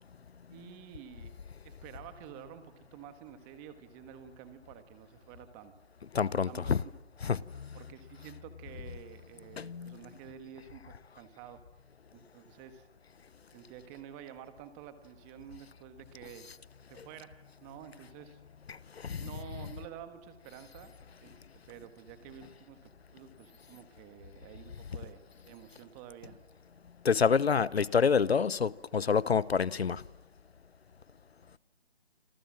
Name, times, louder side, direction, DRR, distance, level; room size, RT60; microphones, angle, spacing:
voice 1, 0.5-1.3 1.6-5.7 6.4-6.7 7.7-11.6 12.1-12.9 13.5-16.5 16.9-18.4 19.2-20.9 21.2-21.4 21.7-26.4, right 9 dB, 10° right, 1.5 m, -50 dB
voice 2, 6.1-6.8 7.2-7.7 9.6-10.0 17.0-17.1 18.7-19.3 27.0-30.0, left 6 dB, 65° left, 1.0 m, -28 dB
28.5 x 27.0 x 7.5 m
figure-of-eight pair, 160°, 34 cm